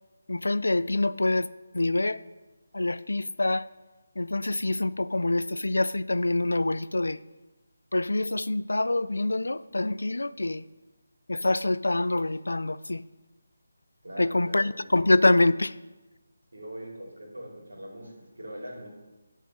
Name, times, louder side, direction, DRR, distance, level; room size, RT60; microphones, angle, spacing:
voice 1, 0.3-1.5 1.7-2.2 2.7-3.7 4.2-7.2 7.9-10.6 11.3-13.0 14.2-15.7, left 2 dB, 80° left, 0.3 m, -25 dB
voice 2, 14.0-14.7 16.5-18.9, right 1 dB, 75° right, 3.0 m, -41 dB
11.0 x 4.6 x 5.5 m
figure-of-eight pair, 155°, 0 cm